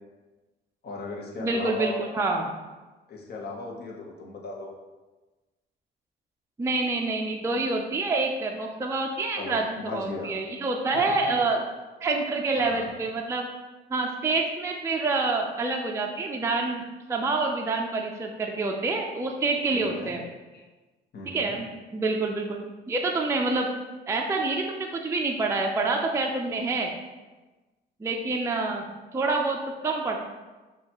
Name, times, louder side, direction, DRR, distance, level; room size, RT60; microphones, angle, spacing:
voice 1, 0.8-2.1 3.1-4.7 9.4-10.3 12.6-12.9 19.7-20.2 20.5-20.6 21.1-21.6, left 2 dB, 55° left, -1 dB, 0.9 m, -36 dB
voice 2, 1.4-2.5 6.6-11.6 12.0-13.5 13.9-20.2 21.3-21.7 21.9-22.6 22.9-23.7 24.1-27.0 28.0-28.9 29.1-30.2, right 3 dB, 15° right, 1 dB, 0.4 m, -27 dB
6.1 x 2.3 x 2.9 m, 1.2 s
cardioid pair, 90°, 20 cm